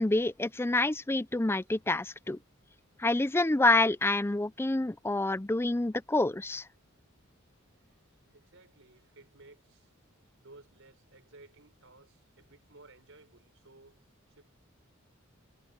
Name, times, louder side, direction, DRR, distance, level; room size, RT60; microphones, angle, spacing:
voice 1, 0.0-2.4 3.0-6.6, left 2 dB, 10° left, 0.5 m, -27 dB
voice 2, 8.3-9.9 10.4-14.0 14.3-14.5, right 2 dB, 65° right, 5.6 m, -57 dB
head